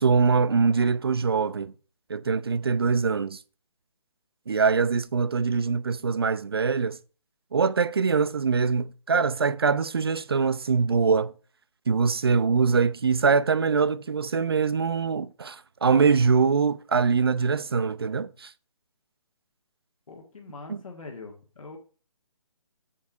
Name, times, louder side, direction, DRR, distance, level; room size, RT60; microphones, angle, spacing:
voice 1, 0.0-1.7 2.1-3.4 4.5-7.0 7.5-11.3 11.9-18.5 20.7-20.8, right 5 dB, 45° right, 0.4 m, -23 dB
voice 2, 20.1-21.8, left 3 dB, 80° left, 1.7 m, -43 dB
7.5 x 4.6 x 5.8 m
hypercardioid pair, 175°, 17 cm